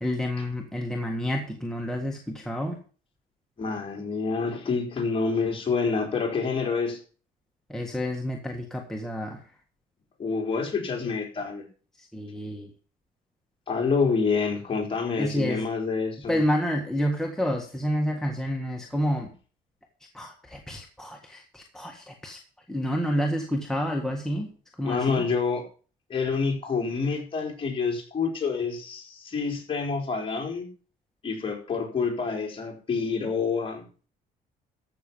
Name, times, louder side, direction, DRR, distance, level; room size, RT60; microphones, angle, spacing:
voice 1, 0.0-2.8 7.7-9.4 12.1-12.7 15.2-15.6 16.3-19.3 20.1-22.4 22.7-24.5 24.8-25.2, equal, 5° left, 1 dB, 1.6 m, -29 dB
voice 2, 3.6-7.0 10.2-11.6 13.7-16.4 24.8-25.6 26.1-30.7 31.2-33.8, left 5 dB, 30° left, 1 dB, 4.1 m, -27 dB
14.0 x 6.5 x 5.5 m, 0.39 s
cardioid pair, 110°, 17 cm